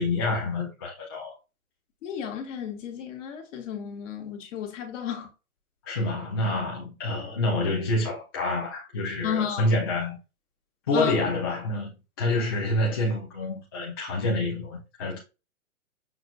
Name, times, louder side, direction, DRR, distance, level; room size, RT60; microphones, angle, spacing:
voice 1, 0.0-1.3 5.9-10.2 10.9-15.2, left 2 dB, 20° left, 0.3 m, -27 dB
voice 2, 2.0-5.3 9.2-9.7 10.9-11.2, left 8 dB, 55° left, 1.2 m, -32 dB
5.9 x 2.4 x 2.2 m
hypercardioid pair, 135°, 44 cm